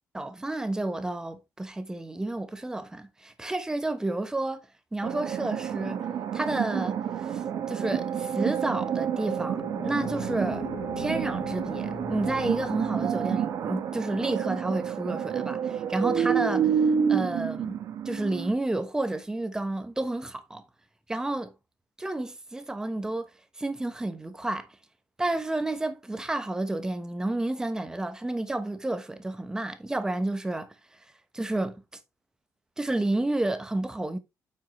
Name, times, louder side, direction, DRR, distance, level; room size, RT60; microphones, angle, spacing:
voice 1, 0.1-6.1 6.3-10.7 11.0-20.6 21.1-21.5 22.0-24.8 25.2-31.8 32.8-34.2, right 2 dB, 10° right, 1.0 m, -31 dB
sound 1, 5.0-18.5, right 8 dB, 65° right, 1.3 m, -29 dB
sound 2, 8.7-13.7, left 4 dB, 80° left, 3.9 m, -41 dB
8.9 x 5.5 x 3.0 m
cardioid pair, 140°, 6 cm